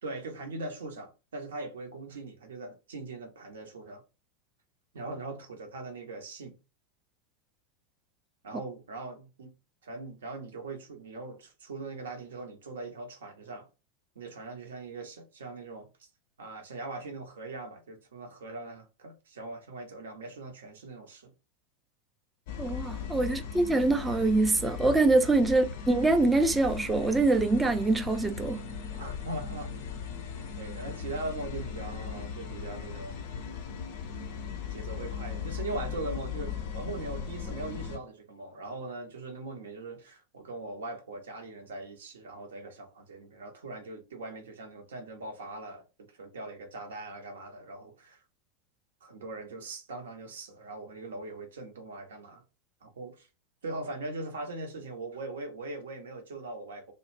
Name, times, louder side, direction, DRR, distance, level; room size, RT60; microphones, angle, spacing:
voice 1, 0.0-4.0 4.9-6.6 8.4-9.5 9.8-13.7 14.2-16.1 16.4-21.3 23.3-23.4 25.6-25.7 29.0-29.9 30.6-33.3 34.7-48.2 49.0-52.4 52.8-53.3 53.6-56.9, right 2 dB, 65° right, 0.7 m, -41 dB
sound 1, 22.5-38.0, left 7 dB, 50° left, 0.4 m, -38 dB
voice 2, 22.6-28.6, right 2 dB, 10° right, 0.4 m, -24 dB
2.3 x 2.0 x 3.1 m
figure-of-eight pair, 90°, 0 cm